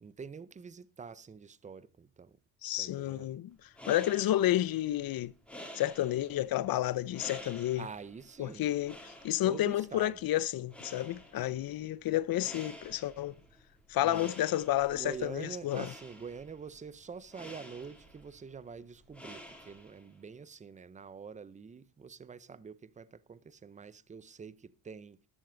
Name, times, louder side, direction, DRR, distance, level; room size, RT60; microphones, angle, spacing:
voice 1, 0.0-2.4 2.6-3.3 7.5-8.8 9.4-10.2 13.9-14.5 14.9-25.2, right 5 dB, 15° right, 0.5 m, -46 dB
voice 2, 2.6-5.3 5.7-7.9 8.4-13.3 13.9-15.9, left 13 dB, 45° left, 0.6 m, -31 dB
sound 1, 3.5-20.2, equal, ahead, 2.6 m, -51 dB
13.5 x 11.5 x 3.8 m
cardioid pair, 135°, 49 cm